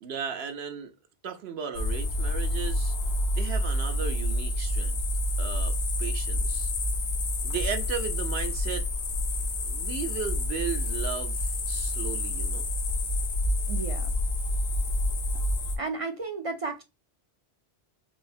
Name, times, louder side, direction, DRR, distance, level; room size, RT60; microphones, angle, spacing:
voice 1, 0.0-0.9 1.2-2.9 3.3-5.0 5.4-5.7 6.0-6.7 7.4-8.9 9.6-12.7, right 7 dB, 75° right, 0.9 m, -35 dB
sound 1, 1.7-15.8, left 1 dB, 80° left, 1.0 m, -28 dB
voice 2, 13.7-14.1 15.8-16.8, right 3 dB, 50° right, 0.4 m, -33 dB
4.7 x 2.0 x 2.5 m
omnidirectional pair, 1.1 m